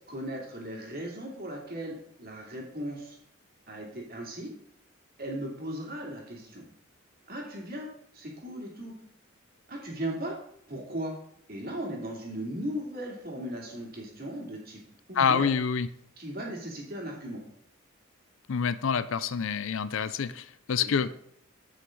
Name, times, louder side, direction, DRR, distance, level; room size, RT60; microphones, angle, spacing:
voice 1, 0.1-3.2 3.7-4.5 5.2-6.6 7.3-7.9 8.1-8.9 9.7-10.4 10.7-11.1 11.5-14.8 15.1-15.5 16.2-17.4 20.8-20.9, right 1 dB, 45° right, -1 dB, 2.7 m, -37 dB
voice 2, 15.1-15.9 18.5-21.1, left 6 dB, 65° left, 15 dB, 0.5 m, -27 dB
12.5 x 5.9 x 3.9 m, 0.69 s
head